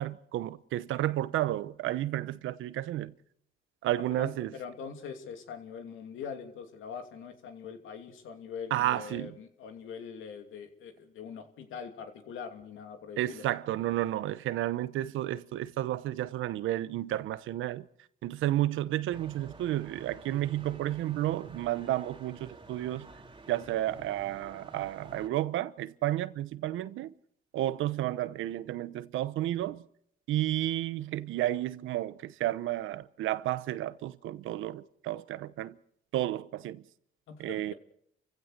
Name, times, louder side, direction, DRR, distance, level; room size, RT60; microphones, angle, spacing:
voice 1, 0.0-3.1 3.8-4.6 8.7-9.4 13.2-17.8 18.2-23.1 23.5-27.1 27.5-29.8 30.3-35.8 36.1-36.8 37.4-37.7, right 14 dB, 85° right, 0.9 m, -32 dB
voice 2, 4.1-13.4 37.3-37.7, left 6 dB, 85° left, 2.9 m, -43 dB
sound 1, 19.1-25.3, right 3 dB, 25° right, 2.4 m, -50 dB
28.5 x 16.0 x 6.7 m
cardioid pair, 90°, 20 cm